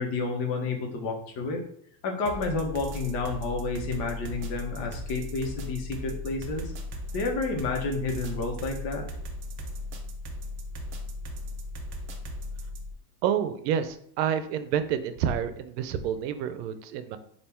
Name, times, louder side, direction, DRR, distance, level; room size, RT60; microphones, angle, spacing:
voice 1, 0.0-1.6 2.0-6.7 7.1-9.1, left 3 dB, 50° left, 2 dB, 1.0 m, -30 dB
sound 1, 2.3-12.9, left 1 dB, 25° right, 0.4 m, -37 dB
voice 2, 13.2-17.2, right 8 dB, 75° right, 11 dB, 0.6 m, -28 dB
3.4 x 2.5 x 4.4 m, 0.64 s
supercardioid pair, 135°, 50 cm